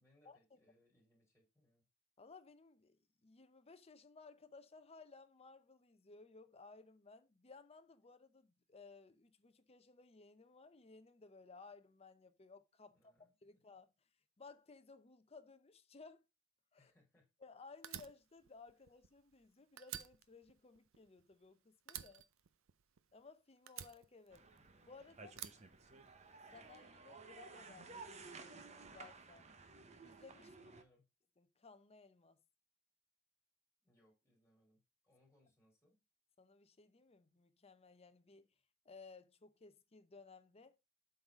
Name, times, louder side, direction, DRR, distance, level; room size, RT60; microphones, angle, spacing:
voice 1, 0.0-1.8 12.9-13.3 16.8-17.3 24.5-24.6 30.4-31.1 33.8-36.0, left 1 dB, 10° left, 3.2 m, -74 dB
voice 2, 2.2-13.1 13.4-13.9 14.4-16.2 16.7-16.9 17.4-22.3 23.1-24.5 24.8-25.4 26.5-29.5 30.0-30.7 31.4-32.4 36.4-38.5 38.8-40.8, left 4 dB, 30° left, 0.7 m, -59 dB
Fire, 17.8-19.5 19.8-21.5 21.9-23.2 23.7-24.8 25.3-26.5, right 11 dB, 75° right, 0.6 m, -51 dB
sound 1, 24.3-30.8, right 4 dB, 35° right, 0.8 m, -55 dB
7.7 x 4.0 x 5.1 m
head